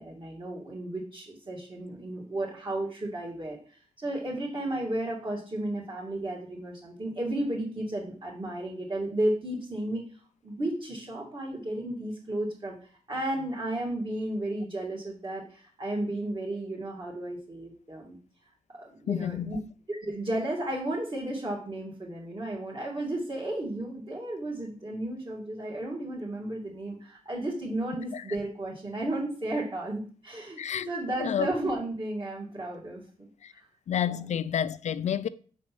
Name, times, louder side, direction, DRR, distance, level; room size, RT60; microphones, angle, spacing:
voice 1, 0.0-10.0 10.4-18.2 18.7-19.6 19.9-33.6, right 1 dB, 35° right, 2.3 m, -33 dB
voice 2, 19.1-19.6 28.1-28.2 30.6-30.9 31.2-31.5 33.4-33.5 33.9-35.3, left 9 dB, 60° left, 0.4 m, -29 dB
7.1 x 4.1 x 6.1 m
cardioid pair, 70°, 14 cm